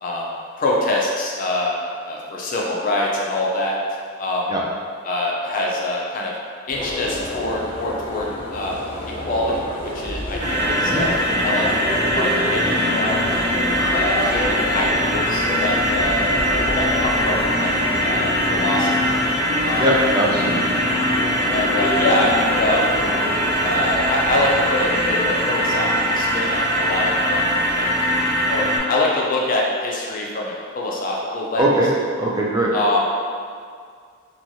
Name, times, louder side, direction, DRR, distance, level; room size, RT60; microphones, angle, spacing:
voice 1, 0.6-1.7 2.0-3.8 4.2-4.5 5.0-6.3 6.7-8.8 9.3-9.7 9.9-11.1 11.4-11.7 12.1-13.2 13.9-16.2 16.7-17.7 18.0-19.2 19.6-19.9 21.5-22.9 23.6-27.4 27.8-27.9 28.4-31.7 32.7-33.0, left 2 dB, 40° left, -3 dB, 0.4 m, -24 dB
sound 1, 6.7-25.3, left 1 dB, 25° left, 0.8 m, -30 dB
sound 2, 10.4-28.8, equal, 55° right, 1.0 m, -21 dB
voice 2, 19.8-20.6 31.6-31.9 32.2-32.7, right 1 dB, 20° right, -4 dB, 0.4 m, -20 dB
3.0 x 2.3 x 2.6 m, 2.1 s
head